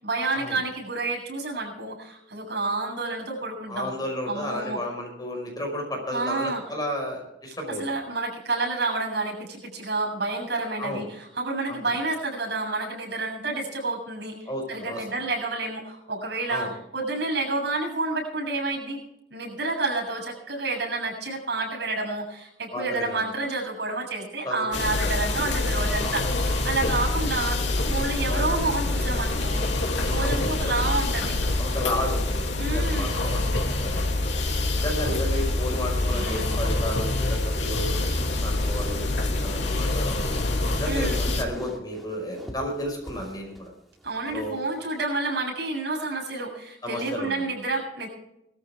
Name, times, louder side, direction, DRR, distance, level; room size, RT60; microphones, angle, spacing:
voice 1, 0.0-3.9 4.3-4.8 6.1-6.6 7.8-16.7 16.9-19.0 19.3-27.6 27.9-29.6 30.1-31.4 32.6-33.1 36.1-36.5 40.8-41.2 44.0-48.1, right 3 dB, 65° right, -2 dB, 7.4 m, -29 dB
voice 2, 3.7-8.0 10.8-11.0 11.7-11.9 14.4-15.0 16.5-16.7 22.7-23.3 24.4-24.6 27.8-28.0 28.3-28.5 30.2-30.8 31.6-34.1 34.7-39.0 39.4-40.2 40.7-43.7 44.3-44.6 46.8-47.4, left 1 dB, 20° left, 1 dB, 5.5 m, -33 dB
sound 1, 24.7-41.4, left 2 dB, 80° left, 3.0 m, -26 dB
sound 2, 34.4-45.0, equal, ahead, 2.4 m, -46 dB
21.0 x 13.5 x 3.7 m, 0.81 s
head